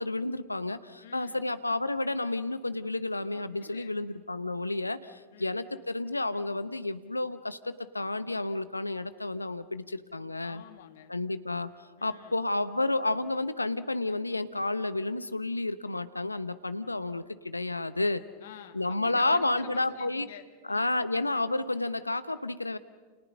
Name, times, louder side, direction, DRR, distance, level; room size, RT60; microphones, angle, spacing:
voice 1, 0.0-10.6 11.1-11.7 12.0-18.2 18.7-20.3 20.7-22.8, left 2 dB, 85° left, 13 dB, 1.0 m, -31 dB
voice 2, 1.0-1.5 3.3-3.9 5.3-5.6 10.4-11.1 12.0-12.4 18.4-21.0, left 10 dB, 60° left, 8 dB, 2.0 m, -49 dB
29.5 x 29.5 x 5.5 m, 1.4 s
figure-of-eight pair, 90°, 0 cm